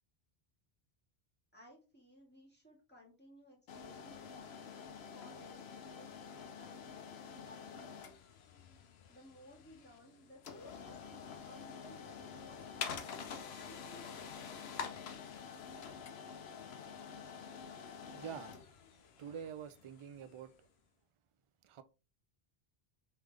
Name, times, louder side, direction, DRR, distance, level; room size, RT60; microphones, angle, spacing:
voice 1, 1.5-5.6 5.9-8.0 9.1-12.6 13.5-14.7, equal, 10° left, 1.9 m, -59 dB
sound 1, 3.7-20.5, left 6 dB, 85° left, 0.9 m, -48 dB
voice 2, 18.1-18.5 19.2-20.7 21.6-21.8, right 8 dB, 55° right, 0.3 m, -46 dB
3.7 x 3.3 x 3.2 m
omnidirectional pair, 1.0 m